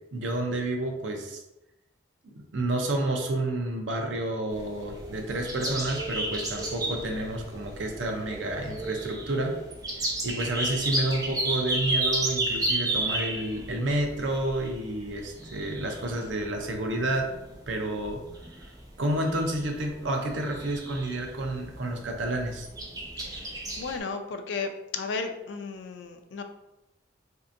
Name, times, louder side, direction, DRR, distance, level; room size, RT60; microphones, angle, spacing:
voice 1, 0.1-1.4 2.2-9.6 10.2-17.3 17.7-18.2 19.0-22.7, right 1 dB, 90° right, 3 dB, 0.6 m, -30 dB
sound 1, 4.5-24.0, right 2 dB, 20° right, 0.4 m, -33 dB
voice 2, 23.8-26.4, left 4 dB, 75° left, 6 dB, 0.4 m, -34 dB
3.3 x 2.7 x 2.5 m, 0.94 s
head